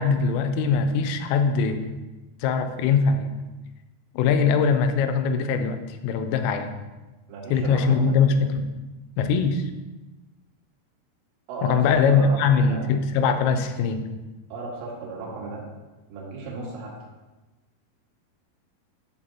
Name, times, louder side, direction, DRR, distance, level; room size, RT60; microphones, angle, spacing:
voice 1, 0.0-1.9 2.4-3.3 4.1-6.7 7.5-8.7 9.2-9.7 11.6-14.1, left 5 dB, 85° left, 7 dB, 3.3 m, -22 dB
voice 2, 7.3-8.2 11.5-12.8 14.5-15.7 16.1-16.9, right 3 dB, 65° right, -3 dB, 4.1 m, -35 dB
11.0 x 8.5 x 2.9 m, 1.1 s
omnidirectional pair, 5.8 m